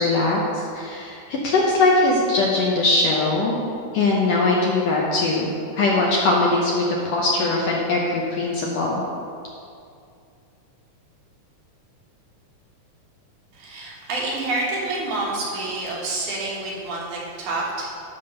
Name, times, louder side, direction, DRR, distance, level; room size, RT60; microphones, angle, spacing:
voice 1, 0.0-3.6 3.9-9.0, left 2 dB, 70° left, -3 dB, 1.7 m, -21 dB
voice 2, 13.5-17.9, right 2 dB, 70° right, -5 dB, 3.0 m, -28 dB
10.5 x 3.8 x 6.6 m, 2.4 s
omnidirectional pair, 3.7 m